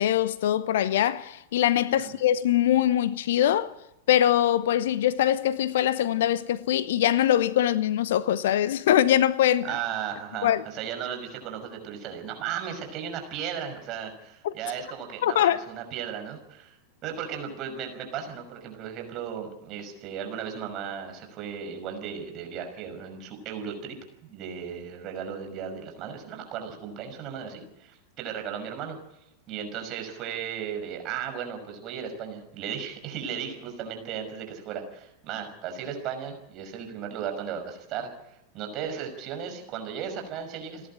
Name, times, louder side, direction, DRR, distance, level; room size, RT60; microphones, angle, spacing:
voice 1, 0.0-3.7 4.1-9.7 10.4-10.6 14.4-14.5 15.2-15.6, left 11 dB, 55° left, 0.8 m, -23 dB
voice 2, 9.6-16.7 17.0-24.0 24.2-29.0 29.5-40.9, right 8 dB, 35° right, 5.8 m, -36 dB
30.0 x 11.0 x 8.8 m
figure-of-eight pair, 90°, 0 cm